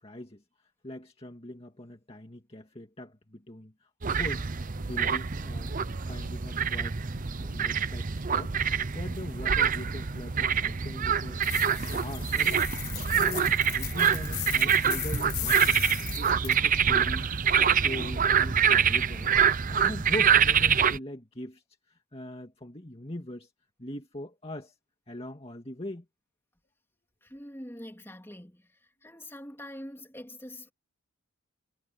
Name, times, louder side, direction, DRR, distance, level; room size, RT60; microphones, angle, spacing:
voice 1, 0.0-4.5 4.8-12.6 13.1-15.8 16.2-17.3 17.6-23.5 23.8-24.8 25.1-26.1, left 1 dB, 25° left, 2.1 m, -41 dB
sound 1, 4.0-21.0, right 7 dB, 35° right, 0.7 m, -26 dB
sound 2, 11.4-16.6, left 17 dB, 70° left, 0.9 m, -37 dB
voice 2, 27.2-30.7, left 1 dB, 10° left, 3.3 m, -44 dB
head